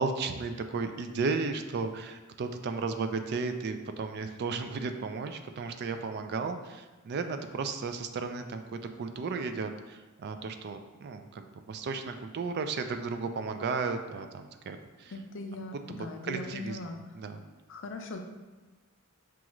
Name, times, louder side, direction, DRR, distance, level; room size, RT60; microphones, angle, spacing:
voice 1, 0.0-15.1 15.9-16.8 17.1-17.4, right 4 dB, 50° right, 7 dB, 0.3 m, -34 dB
voice 2, 15.1-17.0 17.7-18.2, left 2 dB, 55° left, 4 dB, 0.5 m, -39 dB
6.1 x 2.4 x 3.0 m, 1.2 s
head